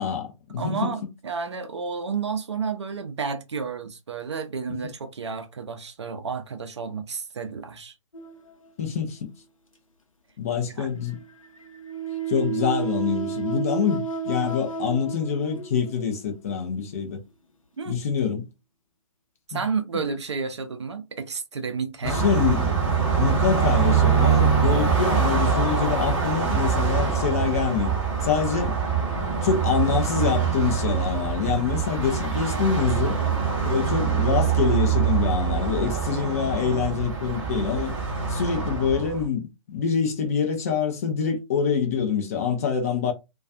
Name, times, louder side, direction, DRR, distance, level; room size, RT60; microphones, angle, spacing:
voice 1, 0.0-0.9 8.8-9.3 10.4-11.2 12.3-17.2 17.9-18.5 19.5-19.6 22.0-22.7 23.2-27.9 28.2-28.8 29.4-33.2 33.6-37.9 38.3-43.1, left 7 dB, 25° left, 0.5 m, -25 dB
voice 2, 0.6-7.9 10.7-10.9 17.8-18.0 19.5-22.2, right 5 dB, 55° right, 0.5 m, -31 dB
sound 1, 8.1-9.1 11.1-16.2 17.0-17.1 18.0-18.1, right 7 dB, 75° left, 0.7 m, -32 dB
Car passing by, 22.0-39.2, right 6 dB, 10° right, 0.8 m, -24 dB
2.3 x 2.3 x 2.5 m
figure-of-eight pair, 130°, 17 cm